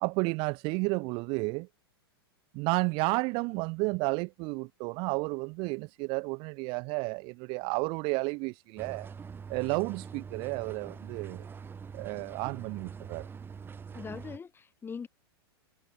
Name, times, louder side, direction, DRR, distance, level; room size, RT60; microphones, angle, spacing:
voice 1, 0.0-1.7 2.5-9.1 9.5-11.5 11.9-13.3, right 28 dB, 40° right, 0.4 m, -32 dB
sound 1, 8.8-14.4, right 6 dB, 15° right, 1.0 m, -44 dB
voice 2, 13.9-15.1, left 6 dB, 15° left, 1.5 m, -41 dB
hypercardioid pair, 105°, 13 cm